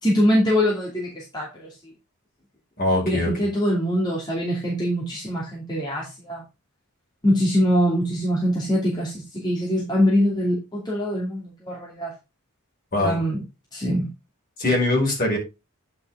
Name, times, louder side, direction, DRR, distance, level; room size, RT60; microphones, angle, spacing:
voice 1, 0.0-1.7 3.0-6.4 7.2-12.1 13.0-13.4 13.7-14.1, equal, 20° left, -4 dB, 2.6 m, -23 dB
voice 2, 2.8-3.3 12.9-13.2 14.6-15.4, left 2 dB, 40° left, -1 dB, 5.3 m, -21 dB
9.8 x 6.2 x 3.7 m, 0.26 s
head